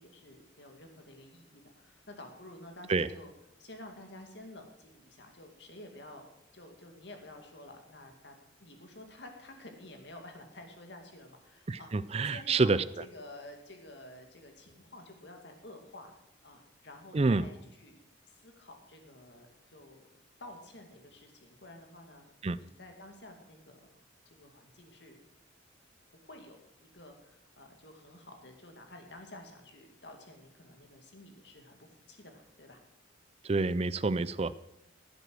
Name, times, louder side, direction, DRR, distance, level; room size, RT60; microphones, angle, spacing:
voice 1, 0.0-3.3 3.6-6.3 6.5-8.4 8.6-11.9 12.2-16.1 16.4-18.0 18.3-20.1 20.4-25.2 26.2-32.8, left 1 dB, 60° left, 4 dB, 2.4 m, -51 dB
voice 2, 11.7-12.8 17.1-17.4 22.4-22.6 33.4-34.5, right 3 dB, 30° right, 16 dB, 0.4 m, -27 dB
16.0 x 8.1 x 6.3 m, 0.86 s
head